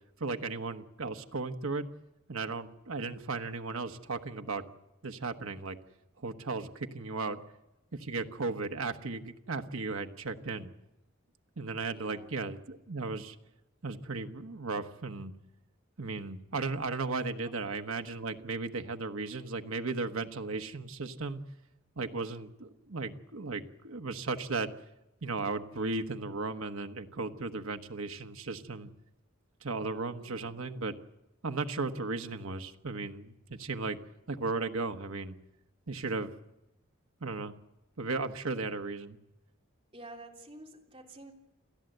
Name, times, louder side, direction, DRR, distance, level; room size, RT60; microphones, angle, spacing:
voice 1, 0.2-1.9 2.3-4.6 5.0-5.8 6.2-7.4 7.9-10.7 11.6-13.4 13.8-15.3 16.0-21.4 22.0-24.7 25.2-28.9 29.6-31.0 31.4-34.0 34.3-35.3 35.9-36.3 37.2-37.5 38.0-39.2, right 3 dB, 85° right, 6 dB, 1.2 m, -35 dB
voice 2, 11.9-12.3 30.0-30.7 39.9-41.3, right 2 dB, 25° right, 0 dB, 3.5 m, -51 dB
28.5 x 13.5 x 8.0 m, 0.92 s
head